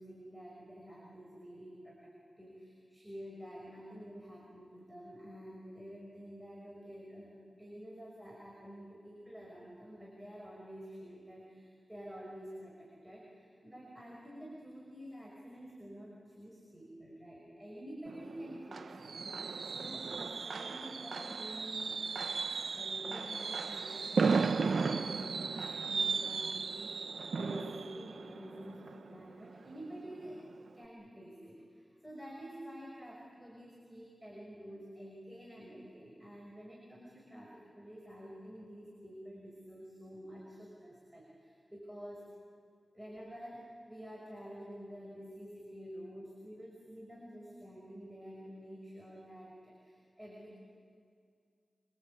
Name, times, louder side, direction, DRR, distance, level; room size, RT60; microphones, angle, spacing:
voice 1, 0.0-22.0 22.7-30.4 30.7-42.3 42.9-50.6, equal, 10° right, -3 dB, 6.2 m, -49 dB
Fireworks, 18.1-29.8 30.1-30.4 30.7-30.8, right 4 dB, 85° right, 0.8 m, -35 dB
26.0 x 26.0 x 8.6 m, 2.3 s
wide cardioid pair, 80°, 0 cm